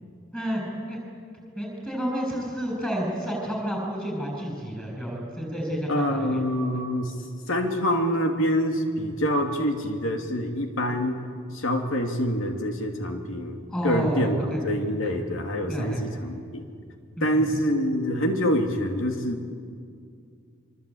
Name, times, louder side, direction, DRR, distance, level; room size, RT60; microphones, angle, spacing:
voice 1, 1.6-6.4 13.7-14.6 15.0-15.1 15.7-16.0 17.2-17.4, equal, 5° left, 0 dB, 7.5 m, -30 dB
voice 2, 5.9-7.1 7.5-11.2 11.5-13.6 13.8-16.6 17.2-19.5, equal, 75° left, 4 dB, 2.8 m, -26 dB
25.0 x 24.0 x 8.7 m, 2.3 s
head